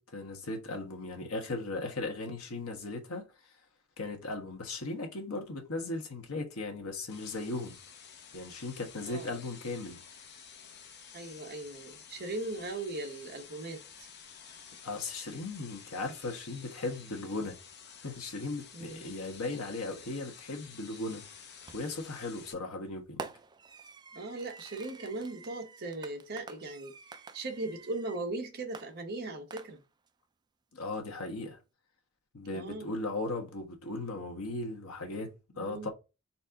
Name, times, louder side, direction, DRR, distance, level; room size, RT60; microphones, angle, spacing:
voice 1, 0.0-3.2 4.0-7.8 8.3-10.0 14.8-17.6 18.0-21.2 21.7-23.2 30.7-31.6 32.3-35.9, left 2 dB, 75° left, 1.2 m, -37 dB
sound 1, 7.1-22.5, left 7 dB, 50° left, 0.8 m, -51 dB
voice 2, 9.0-9.3 11.1-13.8 18.7-19.1 24.1-29.8 32.5-32.9 35.5-35.9, right 2 dB, 45° right, 1.3 m, -39 dB
Fireworks, 21.7-22.1 23.2-28.2 28.7-30.1, right 4 dB, 20° right, 0.4 m, -48 dB
4.2 x 2.8 x 3.6 m
head